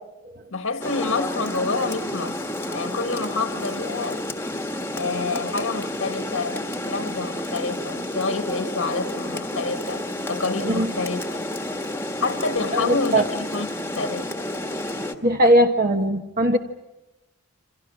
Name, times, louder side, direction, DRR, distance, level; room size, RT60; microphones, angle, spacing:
voice 1, 0.5-4.2 4.9-11.4 12.2-13.7 13.9-14.3, left 3 dB, 70° left, 1.7 m, -28 dB
Rain, 0.8-15.1, left 1 dB, 10° left, 1.4 m, -30 dB
voice 2, 12.7-13.3 15.2-16.6, right 1 dB, 45° right, 1.3 m, -19 dB
29.0 x 27.0 x 6.2 m
head